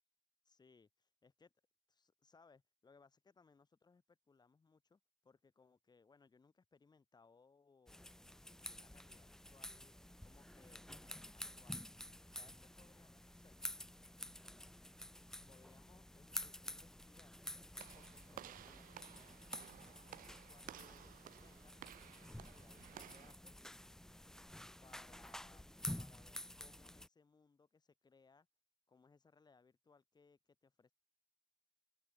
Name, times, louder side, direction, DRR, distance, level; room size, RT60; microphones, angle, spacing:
voice 1, 0.5-1.5 1.9-9.9 10.2-11.9 12.3-13.6 15.5-17.4 17.7-23.6 24.8-25.6 26.0-28.5 28.9-30.9, left 4 dB, 25° left, 4.0 m, -69 dB
sound 1, 7.9-27.1, left 1 dB, 5° left, 0.6 m, -51 dB
Walk footsteps / Slam, 17.8-23.3, right 13 dB, 55° right, 0.6 m, -56 dB
open air
cardioid pair, 110°, 17 cm